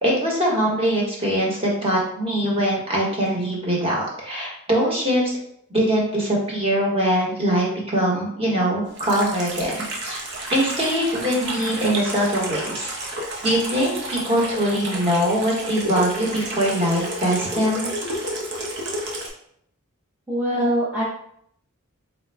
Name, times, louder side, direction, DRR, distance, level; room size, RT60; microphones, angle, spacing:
voice 1, 0.0-5.3 5.7-10.2 10.5-12.9 13.4-17.9, equal, 25° right, -3 dB, 1.0 m, -22 dB
Water tap faucet / Sink (filling or washing), 8.9-19.3, right 1 dB, 50° right, 0.7 m, -31 dB
voice 2, 20.3-21.0, equal, 5° right, -9 dB, 0.5 m, -22 dB
4.0 x 2.2 x 3.3 m, 0.70 s
head